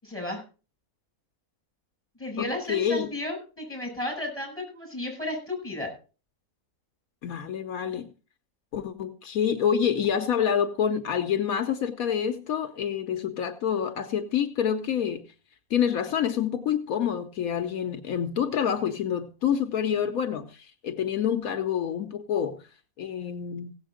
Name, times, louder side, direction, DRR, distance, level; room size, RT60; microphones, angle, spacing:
voice 1, 0.0-0.4 2.2-5.9, left 1 dB, 10° left, 7.3 m, -33 dB
voice 2, 2.4-3.1 7.2-8.1 8.7-15.3 15.7-22.6 23.0-23.8, left 8 dB, 80° left, 1.3 m, -27 dB
16.5 x 7.9 x 4.9 m
omnidirectional pair, 1.5 m